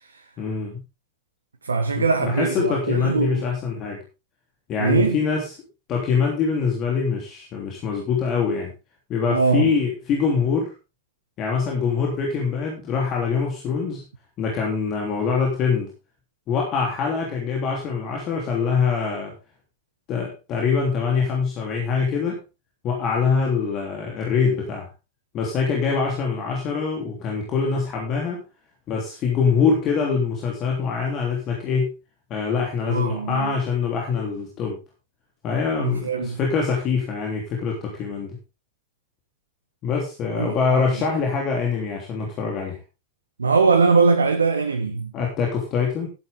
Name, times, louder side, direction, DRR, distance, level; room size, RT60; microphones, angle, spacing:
voice 1, 0.4-0.8 1.9-4.0 4.7-5.5 5.9-8.7 9.1-10.7 11.4-14.0 14.4-15.9 16.5-19.3 20.1-22.4 22.8-24.9 25.3-28.4 28.9-31.9 32.3-34.8 35.4-38.4 39.8-42.8 45.1-46.1, left 5 dB, 35° left, 3.3 m, -24 dB
voice 2, 1.6-3.4 4.8-5.2 9.3-9.7 32.9-33.5 35.8-36.4 40.3-40.8 43.4-45.1, right 4 dB, 75° right, 1.3 m, -21 dB
13.0 x 10.5 x 3.7 m
figure-of-eight pair, 90°, 0 cm